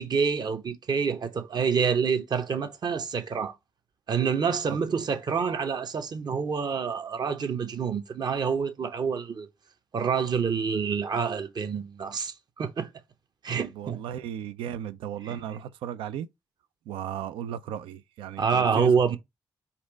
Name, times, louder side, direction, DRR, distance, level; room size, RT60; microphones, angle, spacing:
voice 1, 0.0-3.5 4.1-9.5 9.9-12.9 13.4-14.0 15.2-15.4 18.4-19.2, right 6 dB, 50° right, 0.9 m, -27 dB
voice 2, 13.6-16.3 16.9-18.9, right 10 dB, 75° right, 0.4 m, -35 dB
4.2 x 2.5 x 4.9 m
hypercardioid pair, 40°, 9 cm